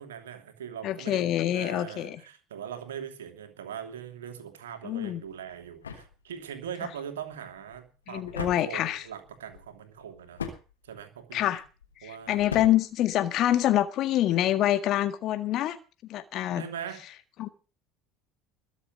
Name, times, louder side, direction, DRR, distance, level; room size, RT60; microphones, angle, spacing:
voice 1, 0.0-10.4 10.8-11.5 12.0-12.5 16.5-17.0, right 8 dB, 75° right, 6 dB, 2.9 m, -41 dB
voice 2, 0.8-2.2 4.8-5.2 8.1-9.0 11.3-11.6 12.0-15.8 16.1-16.6 17.4-17.5, left 13 dB, 50° left, 12 dB, 1.7 m, -26 dB
sound 1, 5.0-13.8, left 6 dB, 80° left, 3.5 m, -43 dB
21.5 x 7.3 x 6.8 m, 0.34 s
figure-of-eight pair, 65°, 0 cm